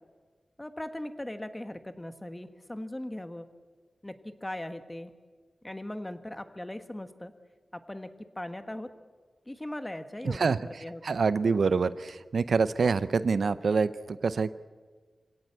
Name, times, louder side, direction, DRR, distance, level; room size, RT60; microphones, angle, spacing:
voice 1, 0.6-3.5 4.0-5.1 5.6-7.3 7.7-8.9 9.5-11.0, left 1 dB, 15° left, 9 dB, 1.4 m, -39 dB
voice 2, 10.2-10.6 11.0-14.7, right 5 dB, 75° right, 14 dB, 0.6 m, -26 dB
27.0 x 17.5 x 8.1 m, 1.5 s
wide cardioid pair, 110°, 0 cm